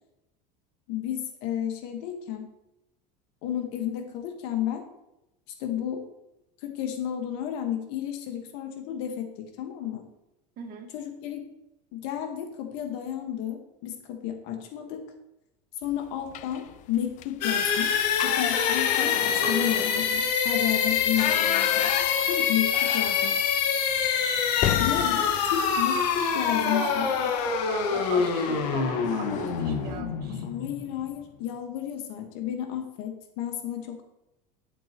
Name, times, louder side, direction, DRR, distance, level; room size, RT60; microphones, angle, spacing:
voice 1, 0.9-2.5 3.4-4.8 5.6-6.0 6.6-10.1 10.9-11.4 11.9-15.0 15.8-21.9 22.3-23.5 24.8-27.1 30.3-34.0, left 10 dB, 70° left, 5 dB, 1.6 m, -32 dB
voice 2, 10.6-10.9 19.4-19.7 24.9-25.0 26.6-30.5, right 6 dB, 50° right, 3 dB, 1.8 m, -38 dB
sound 1, 16.3-16.7 17.1-17.3 17.6-23.7 24.0-24.1 24.5-26.6 28.0-28.2 28.6-28.8 29.1-29.7, left 13 dB, 40° left, 0.4 m, -32 dB
sound 2, 17.4-31.1, left 7 dB, 90° left, 1.6 m, -26 dB
11.0 x 8.6 x 3.0 m, 0.90 s
supercardioid pair, 140°, 20 cm